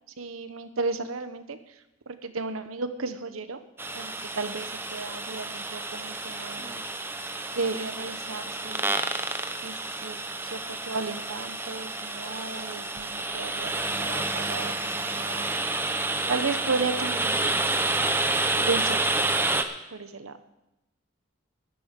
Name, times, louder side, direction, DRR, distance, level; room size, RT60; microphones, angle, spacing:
voice 1, 0.2-1.6 2.1-3.6 3.9-6.8 7.5-9.0 9.6-15.5 16.3-18.1 18.6-19.3 19.9-20.3, right 4 dB, 90° right, 10 dB, 1.0 m, -34 dB
sound 1, 3.8-19.6, right 2 dB, 10° right, 0.6 m, -29 dB
13.0 x 11.5 x 5.2 m, 0.92 s
head